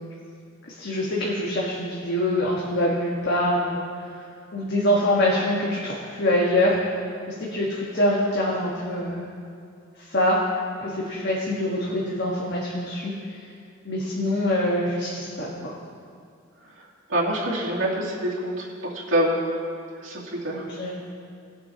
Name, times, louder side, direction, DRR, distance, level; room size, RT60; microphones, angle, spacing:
voice 1, 0.7-3.8 4.5-6.8 7.5-9.3 10.1-10.4 10.8-13.1 13.8-15.8 20.5-20.9, left 1 dB, 60° left, -5 dB, 1.5 m, -24 dB
voice 2, 16.7-19.4 20.0-20.6, right 1 dB, 80° right, -7 dB, 2.6 m, -26 dB
20.5 x 8.1 x 2.9 m, 2.4 s
head